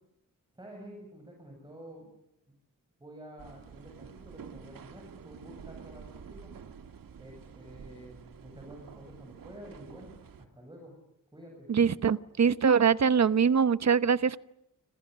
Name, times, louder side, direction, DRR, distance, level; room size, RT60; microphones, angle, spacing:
voice 1, 0.6-2.1 3.0-6.5 7.2-10.9 11.3-11.7, right 1 dB, 15° right, 0 dB, 7.4 m, -49 dB
sound 1, 3.4-10.5, right 7 dB, 85° right, 2.0 m, -49 dB
voice 2, 11.7-14.4, right 6 dB, 55° right, 15 dB, 1.0 m, -23 dB
28.0 x 26.5 x 6.7 m, 0.82 s
wide cardioid pair, 165°, 33 cm